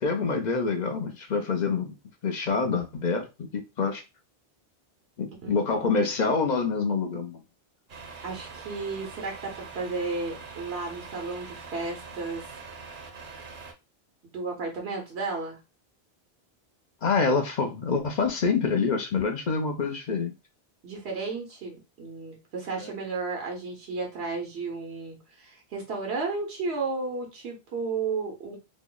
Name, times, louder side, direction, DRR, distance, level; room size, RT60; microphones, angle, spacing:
voice 1, 0.0-1.9 2.2-3.3 3.8-4.0 5.2-7.4 17.0-20.3 22.8-22.9, left 4 dB, 50° left, 0.6 m, -26 dB
voice 2, 5.4-5.8 8.2-12.6 14.3-15.6 20.8-28.6, right 4 dB, 80° right, 1.1 m, -33 dB
Truck, 7.9-13.7, right 4 dB, 55° right, 0.8 m, -43 dB
3.0 x 2.0 x 3.7 m
omnidirectional pair, 1.1 m